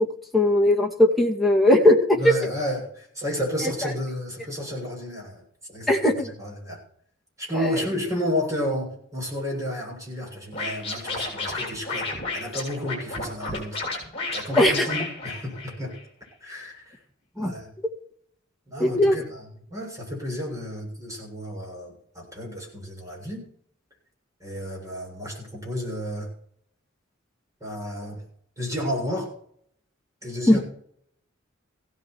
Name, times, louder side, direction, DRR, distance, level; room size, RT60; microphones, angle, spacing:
voice 1, 0.3-2.2 5.9-6.3 7.6-7.8 14.6-14.9 17.4-17.5 18.8-19.2 30.5-30.6, left 1 dB, ahead, 1 dB, 2.3 m, -19 dB
voice 2, 2.2-5.4 5.7-6.0 6.4-6.8 7.4-13.8 14.3-16.0 16.4-17.0 17.4-17.7 18.7-23.4 24.4-26.3 27.6-28.2 28.6-29.3 30.2-30.6, equal, 15° right, -1 dB, 7.3 m, -31 dB
Scratching (performance technique), 10.5-16.0, left 3 dB, 30° left, 7.4 m, -32 dB
16.5 x 13.0 x 4.7 m, 0.63 s
head